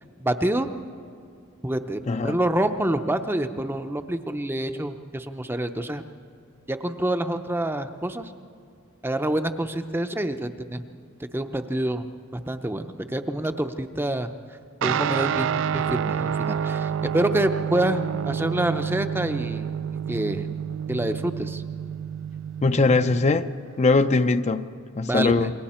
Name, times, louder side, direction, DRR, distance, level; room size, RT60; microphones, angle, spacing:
voice 1, 0.2-0.7 1.6-6.0 6.7-8.3 9.0-10.8 11.3-12.1 12.3-14.3 14.8-19.7 20.1-20.5 20.9-21.6 25.1-25.5, right 1 dB, 10° right, 8 dB, 0.6 m, -27 dB
voice 2, 2.1-2.4 22.6-23.5 23.8-25.5, left 3 dB, 35° left, 10 dB, 0.5 m, -21 dB
Guitar, 14.8-24.5, right 8 dB, 65° right, 0.4 m, -29 dB
28.0 x 22.0 x 4.3 m, 2.2 s
head